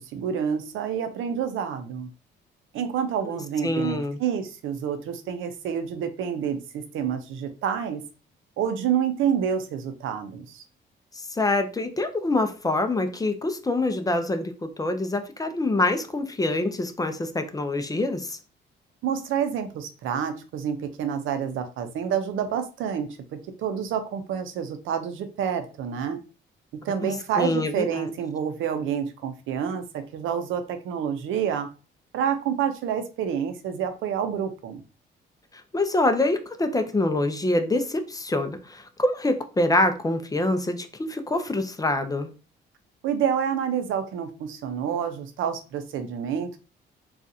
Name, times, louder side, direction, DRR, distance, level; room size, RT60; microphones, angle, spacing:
voice 1, 0.1-2.1 2.7-8.0 8.6-10.6 19.0-26.2 26.8-31.7 32.1-34.8 43.0-46.6, right 8 dB, 80° right, 9 dB, 0.6 m, -28 dB
voice 2, 3.6-4.2 11.1-18.4 27.0-28.1 35.7-42.3, left 2 dB, 20° left, 7 dB, 0.5 m, -25 dB
3.9 x 2.4 x 2.7 m, 0.33 s
cardioid pair, 90°, 20 cm